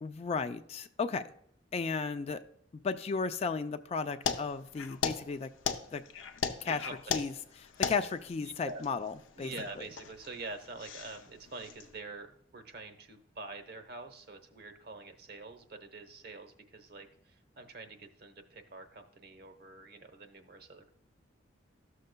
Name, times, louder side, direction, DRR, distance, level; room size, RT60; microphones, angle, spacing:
voice 1, 0.0-1.3 1.7-2.4 2.7-5.5 5.9-6.0 6.6-6.8 7.1-7.3 7.9-9.5, left 4 dB, 35° left, 10 dB, 0.3 m, -34 dB
sound 1, 4.2-11.9, left 6 dB, 85° left, 0.6 m, -37 dB
voice 2, 6.8-7.3 8.4-8.8 9.4-20.9, right 3 dB, 55° right, 6 dB, 0.8 m, -46 dB
13.5 x 6.5 x 2.2 m, 0.68 s
head